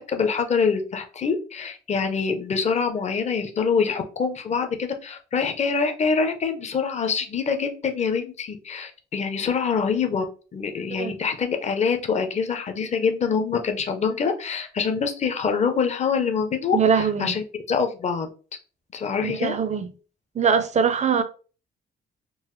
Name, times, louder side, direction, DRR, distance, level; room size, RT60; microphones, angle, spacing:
voice 1, 0.1-10.2 10.5-18.3 18.9-19.6, left 5 dB, 35° left, 0.6 m, -25 dB
voice 2, 16.7-17.4 19.2-19.9 20.3-21.2, right 6 dB, 35° right, 0.5 m, -22 dB
3.8 x 2.0 x 3.1 m
cardioid pair, 90°, 20 cm